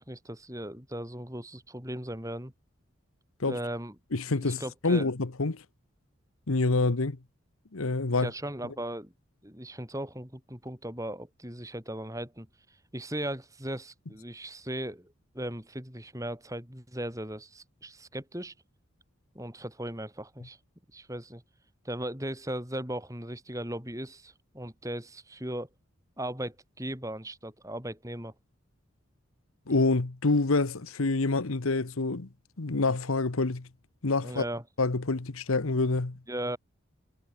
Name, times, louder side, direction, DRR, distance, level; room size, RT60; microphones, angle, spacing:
voice 1, 0.0-2.5 3.4-4.0 4.4-5.1 8.2-9.1 9.4-12.5 12.9-18.5 19.3-20.6 20.9-21.4 21.8-25.7 26.2-28.3 34.2-34.6 36.3-36.6, right 1 dB, 15° right, 7.7 m, -37 dB
voice 2, 4.1-5.6 6.5-7.2 7.7-8.3 29.7-32.3 32.6-33.7 34.0-34.4 34.8-36.2, left 3 dB, 85° left, 1.1 m, -27 dB
head